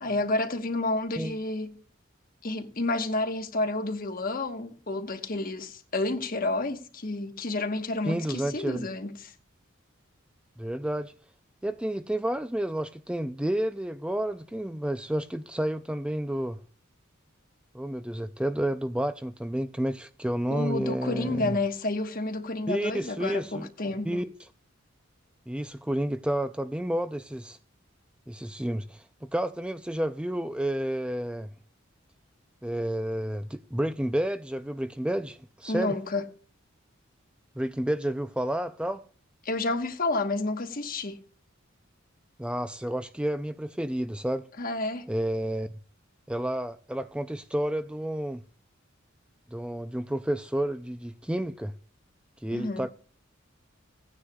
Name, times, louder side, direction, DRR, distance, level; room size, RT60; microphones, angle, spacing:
voice 1, 0.0-1.8 2.4-9.3 20.5-24.2 35.7-36.3 39.4-41.2 44.6-45.1 52.5-52.9, left 2 dB, 45° left, 1.2 m, -30 dB
voice 2, 8.1-8.9 10.6-11.1 11.6-16.6 17.7-21.6 22.7-23.7 24.0-24.5 25.5-27.6 28.3-31.5 32.6-35.9 37.6-39.0 42.4-44.5 45.1-45.7 46.3-48.4 49.5-51.7 52.4-52.9, right 1 dB, 5° right, 0.4 m, -30 dB
16.5 x 9.8 x 2.3 m
head